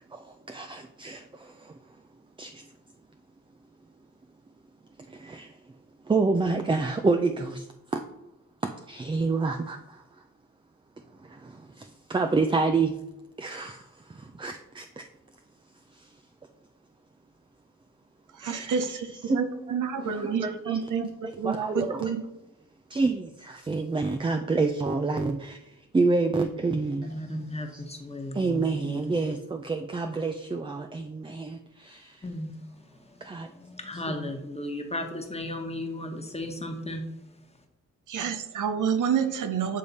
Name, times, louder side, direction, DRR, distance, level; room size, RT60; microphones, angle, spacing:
voice 1, 0.1-1.8 2.4-2.6 5.1-5.5 6.1-7.7 7.9-8.1 8.6-10.0 11.2-13.0 13.4-15.1 16.0-16.1 18.4-22.1 22.9-25.6 25.9-27.1 27.7-27.8 28.3-32.2 33.2-33.5 34.1-34.2, right 3 dB, 15° right, 0.4 m, -29 dB
voice 2, 18.4-19.0 19.3-21.1 21.4-22.2 38.1-39.8, right 7 dB, 70° right, 0.7 m, -28 dB
voice 3, 27.0-29.2 32.2-37.1, left 1 dB, 20° left, 1.2 m, -36 dB
8.6 x 3.4 x 4.1 m
cardioid pair, 70°, 32 cm